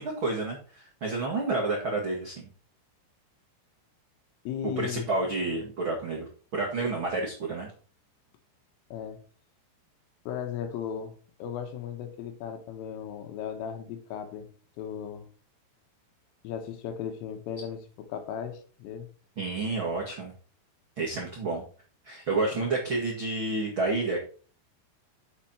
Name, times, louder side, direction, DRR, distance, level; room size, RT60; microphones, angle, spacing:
voice 1, 0.0-2.5 4.6-6.2 6.5-7.7 19.4-20.3 21.0-21.6 22.0-24.2, right 3 dB, 70° right, 1.2 m, -30 dB
voice 2, 4.5-5.1 8.9-9.2 10.3-11.1 11.4-14.5 14.8-15.3 16.4-19.1 22.5-22.7, left 8 dB, 80° left, 3.9 m, -36 dB
8.3 x 7.5 x 4.4 m
omnidirectional pair, 5.8 m